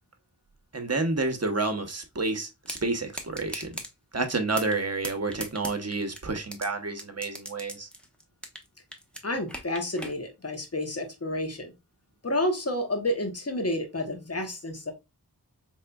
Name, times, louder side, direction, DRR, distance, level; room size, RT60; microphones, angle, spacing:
voice 1, 0.7-3.8 4.1-7.9, right 3 dB, 40° right, 1.0 m, -29 dB
sound 1, 2.7-2.8 3.1-3.9 4.3-4.8 5.0-6.7 7.0-8.7 8.9-10.1, equal, 5° left, 1.0 m, -37 dB
voice 2, 9.2-11.7 12.2-14.9, left 1 dB, 35° left, 1.2 m, -30 dB
4.1 x 3.4 x 2.2 m
wide cardioid pair, 40°, 40 cm